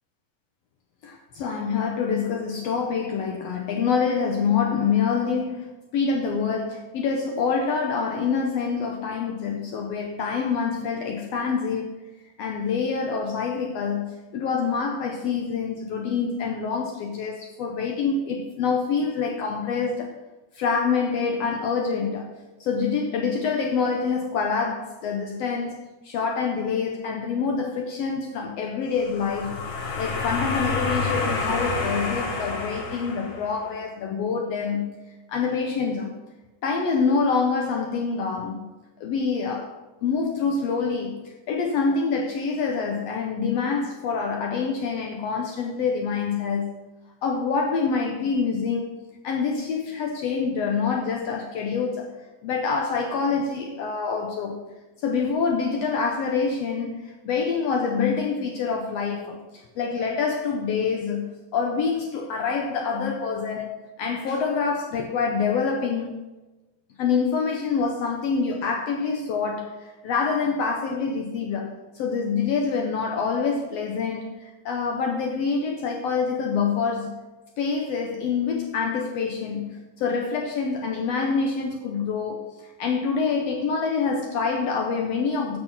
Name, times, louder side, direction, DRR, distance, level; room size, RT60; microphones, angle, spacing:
voice 1, 1.0-11.9 12.4-20.1 20.6-22.3 22.6-25.8 26.0-29.6 30.0-34.9 35.3-36.2 36.6-38.7 39.0-39.7 40.0-41.2 41.5-46.8 47.2-49.0 49.2-52.1 52.4-54.6 55.0-59.4 59.8-66.1 67.0-77.2 77.6-82.5 82.8-85.6, left 5 dB, 80° left, 2 dB, 1.4 m, -26 dB
sound 1, 29.0-33.7, left 3 dB, 65° left, 3.2 m, -28 dB
7.8 x 6.5 x 5.7 m, 1.1 s
omnidirectional pair, 3.8 m